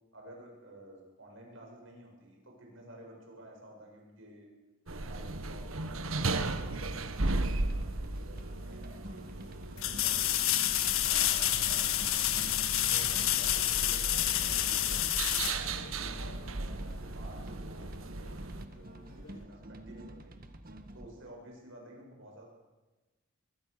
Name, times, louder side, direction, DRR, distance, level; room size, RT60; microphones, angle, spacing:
voice 1, 0.1-4.5 4.9-6.7 7.0-9.4 9.7-10.4 11.0-12.5 12.9-20.3 20.9-22.4, right 1 dB, 70° right, 0 dB, 7.7 m, -52 dB
sound 1, 4.9-18.7, right 2 dB, 85° right, 1.3 m, -37 dB
sound 2, 6.6-21.1, right 1 dB, 45° right, 1.8 m, -49 dB
sound 3, 8.4-8.5 9.8-16.4 19.2-19.3, left 12 dB, 90° left, 1.6 m, -29 dB
23.5 x 23.0 x 6.9 m, 1.2 s
head